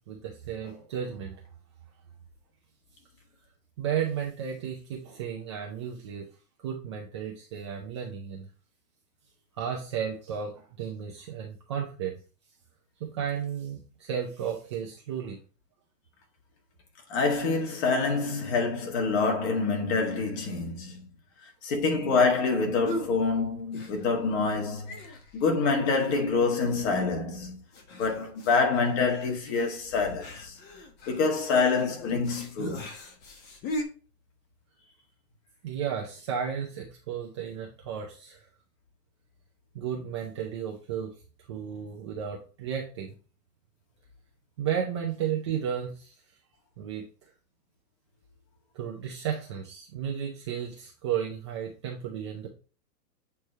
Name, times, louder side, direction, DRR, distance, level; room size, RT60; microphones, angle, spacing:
voice 1, 0.0-1.4 3.8-6.2 6.6-8.5 9.5-12.1 13.0-15.4 35.6-38.5 39.7-41.1 41.5-43.2 44.6-46.1 46.8-47.0 48.7-52.5, right 8 dB, 20° right, 0.4 m, -33 dB
voice 2, 17.1-21.0 21.6-27.6 27.9-30.6 31.1-32.9, left 4 dB, 40° left, 1.9 m, -26 dB
sound 1, 22.8-23.1 23.7-24.3 24.5-24.6 24.9-25.4 25.9-26.4 26.7-26.8 27.7-33.8, left 1 dB, 20° left, 0.9 m, -39 dB
8.3 x 3.3 x 4.3 m
hypercardioid pair, 145°, 49 cm